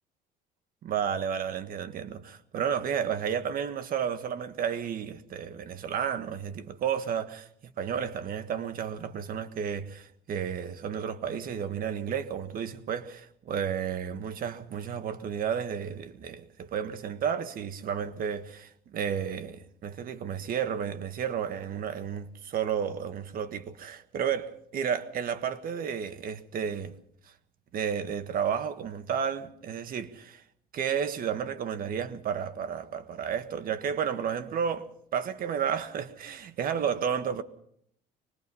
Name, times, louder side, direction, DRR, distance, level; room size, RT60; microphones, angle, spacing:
voice 1, 0.8-26.9 27.7-30.4 30.7-37.4, right 8 dB, 60° right, 1.6 m, -32 dB
24.0 x 21.0 x 5.5 m
cardioid pair, 110°, 17 cm